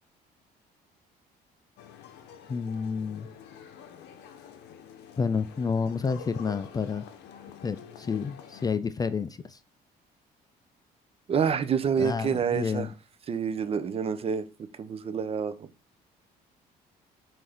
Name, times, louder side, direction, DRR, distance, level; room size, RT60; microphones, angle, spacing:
sound 1, 1.8-8.7, left 8 dB, 85° left, 0.6 m, -48 dB
voice 1, 2.5-3.3 5.2-7.0 7.6-9.6 12.0-12.9, left 5 dB, 25° left, 12 dB, 0.3 m, -30 dB
voice 2, 11.3-12.9 13.3-14.5 14.8-15.7, right 7 dB, 35° right, 11 dB, 0.5 m, -28 dB
5.6 x 2.6 x 3.4 m, 0.31 s
cardioid pair, 110°, 17 cm